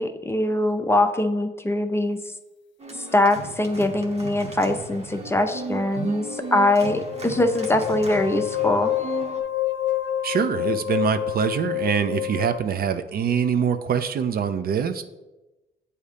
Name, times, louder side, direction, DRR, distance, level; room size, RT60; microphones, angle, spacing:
voice 1, 0.0-2.2 3.1-8.9, left 1 dB, 10° left, 7 dB, 0.5 m, -22 dB
Organ, 2.8-9.4, right 3 dB, 30° right, 1.0 m, -37 dB
sound 1, 4.9-12.6, left 12 dB, 65° left, 0.5 m, -29 dB
voice 2, 10.2-15.0, right 7 dB, 50° right, 9 dB, 0.4 m, -24 dB
8.0 x 2.8 x 5.0 m, 1.1 s
cardioid pair, 90°, 20 cm